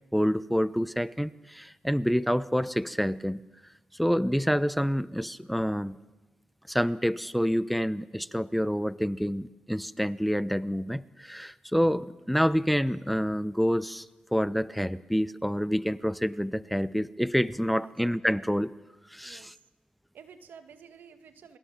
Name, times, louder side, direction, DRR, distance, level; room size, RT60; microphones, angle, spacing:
voice 1, 0.1-3.4 3.9-6.0 6.7-14.1 14.3-18.7 19.1-19.5, equal, ahead, 16 dB, 0.9 m, -27 dB
voice 2, 19.2-19.5 20.1-21.6, right 6 dB, 80° right, 8 dB, 2.1 m, -51 dB
28.0 x 21.5 x 7.5 m, 1.1 s
supercardioid pair, 50°, 3 cm